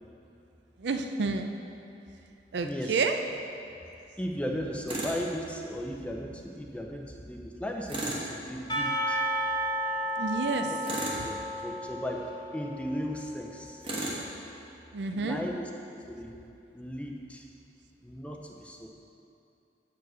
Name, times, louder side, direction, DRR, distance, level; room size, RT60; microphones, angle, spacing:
voice 1, 0.8-1.5 2.5-3.2 10.2-10.7 11.2-11.3 14.9-15.4, right 4 dB, 75° right, 6 dB, 0.5 m, -29 dB
voice 2, 2.6-3.0 4.2-9.2 10.6-10.8 11.2-13.9 15.1-15.7 16.1-16.4 16.7-17.5 18.0-18.9, equal, 5° left, 1 dB, 0.5 m, -36 dB
Tools, 4.9-5.2 7.9-8.3 10.8-11.3 13.8-14.2, right 1 dB, 30° right, 1.1 m, -33 dB
Percussion / Church bell, 8.7-13.5, right 1 dB, 25° left, 1.2 m, -32 dB
7.9 x 4.7 x 6.2 m, 2.7 s
head